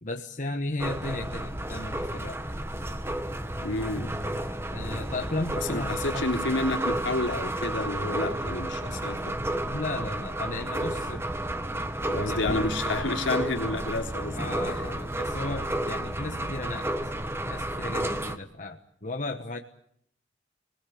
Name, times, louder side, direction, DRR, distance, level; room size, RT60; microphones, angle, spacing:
voice 1, 0.0-2.4 3.5-4.1 4.7-6.3 9.7-11.3 12.1-12.6 14.4-16.9 17.4-19.6, left 2 dB, 40° left, 4 dB, 1.3 m, -35 dB
sound 1, 0.8-18.4, right 1 dB, 15° right, 1.4 m, -31 dB
voice 2, 3.6-4.1 5.7-9.4 12.1-14.4, left 2 dB, 75° left, 2 dB, 3.6 m, -30 dB
28.0 x 20.0 x 8.7 m, 0.70 s
head